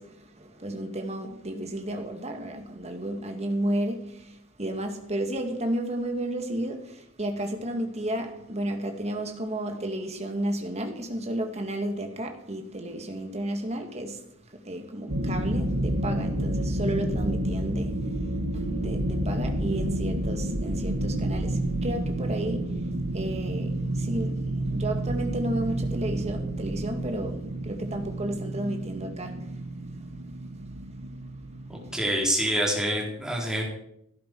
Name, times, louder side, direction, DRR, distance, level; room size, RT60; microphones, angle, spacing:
voice 1, 0.0-29.7, right 1 dB, 30° right, 2.0 m, -33 dB
sound 1, 15.1-32.2, right 1 dB, 90° right, 1.8 m, -30 dB
voice 2, 31.7-33.6, equal, 5° right, 4.2 m, -26 dB
16.5 x 10.5 x 4.7 m
head